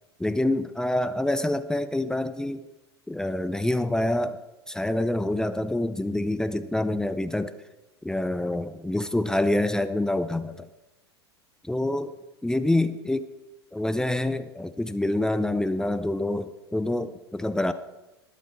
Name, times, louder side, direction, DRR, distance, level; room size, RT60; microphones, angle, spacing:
voice 1, 0.2-2.6 3.1-4.4 4.7-7.6 8.0-10.7 11.6-12.1 12.4-13.3 13.7-17.7, left 1 dB, 5° left, 11 dB, 0.5 m, -26 dB
20.0 x 8.4 x 3.8 m, 1.0 s
figure-of-eight pair, 85°, 14 cm